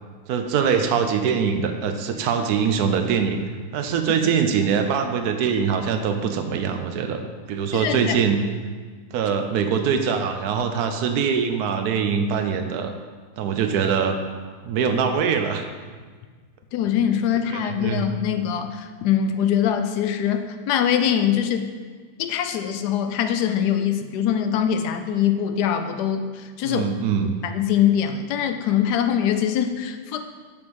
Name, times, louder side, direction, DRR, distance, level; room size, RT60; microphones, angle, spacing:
voice 1, 0.3-3.4 3.7-7.2 7.5-8.4 9.1-12.9 13.4-14.2 14.6-15.7 17.5-18.0 26.6-27.4, right 6 dB, 75° right, 7 dB, 1.1 m, -23 dB
voice 2, 7.7-8.1 16.7-21.7 22.2-26.9 27.4-30.2, left 9 dB, 85° left, 7 dB, 1.2 m, -23 dB
6.9 x 5.2 x 4.7 m, 1.5 s
omnidirectional pair, 1.7 m